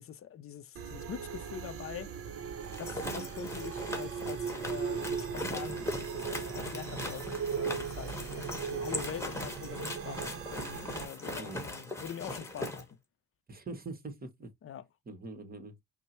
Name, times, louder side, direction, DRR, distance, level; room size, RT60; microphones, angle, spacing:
voice 1, 0.0-2.1 2.8-13.0 14.6-14.8, left 9 dB, 45° left, 0.5 m, -44 dB
sound 1, 0.8-11.1, right 7 dB, 50° right, 0.8 m, -38 dB
sound 2, 2.6-12.8, left 1 dB, 10° left, 1.2 m, -40 dB
voice 2, 13.5-14.5 15.1-15.7, right 2 dB, 30° right, 1.2 m, -43 dB
5.3 x 2.1 x 3.0 m
cardioid pair, 90°, 30 cm